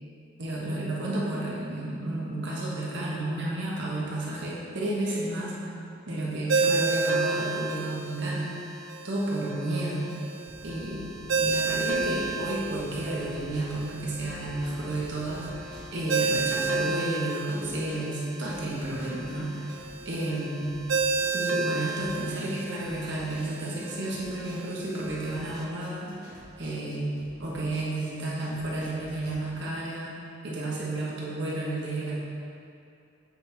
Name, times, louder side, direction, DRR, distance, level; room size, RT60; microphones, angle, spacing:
voice 1, 0.4-5.5 6.1-8.5 9.0-10.1 10.6-11.0 11.4-19.7 20.0-20.7 21.3-27.1 27.4-30.2 30.4-32.2, right 1 dB, 65° right, -5 dB, 1.3 m, -32 dB
Ringtone, 6.5-25.6, right 3 dB, 85° right, 0.5 m, -32 dB
sound 1, 10.5-16.0, equal, 10° left, 0.5 m, -49 dB
sound 2, 11.9-29.3, equal, 50° right, 1.6 m, -51 dB
7.9 x 4.1 x 4.1 m, 2.6 s
head